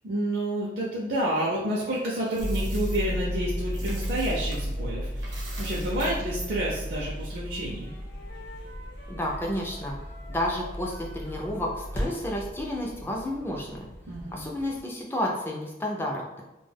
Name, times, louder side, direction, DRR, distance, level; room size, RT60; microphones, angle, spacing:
voice 1, 0.0-7.9 14.1-14.5, right 1 dB, 50° right, -5 dB, 0.5 m, -29 dB
Coin (dropping), 1.9-4.8 5.1-7.4, right 2 dB, 75° right, 0.8 m, -46 dB
sound 1, 2.4-14.8, equal, 50° left, 0.7 m, -34 dB
Wind instrument woodwind instrument, 7.3-12.5, left 1 dB, 85° left, 0.8 m, -49 dB
voice 2, 9.1-10.0 10.3-13.9 14.3-16.4, left 1 dB, 10° left, -1 dB, 0.3 m, -31 dB
2.2 x 2.2 x 3.3 m, 0.97 s
head